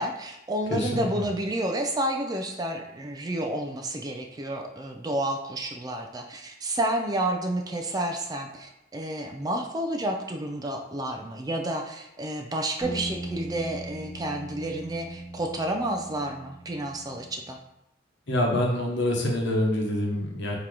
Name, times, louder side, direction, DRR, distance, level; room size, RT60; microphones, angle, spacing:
voice 1, 0.0-17.6, right 1 dB, 20° right, 3 dB, 0.4 m, -30 dB
voice 2, 0.7-1.1 18.3-20.6, left 1 dB, 65° left, 0 dB, 1.0 m, -26 dB
sound 1, 12.8-17.5, right 1 dB, ahead, 1.1 m, -39 dB
3.8 x 2.9 x 4.6 m, 0.84 s
head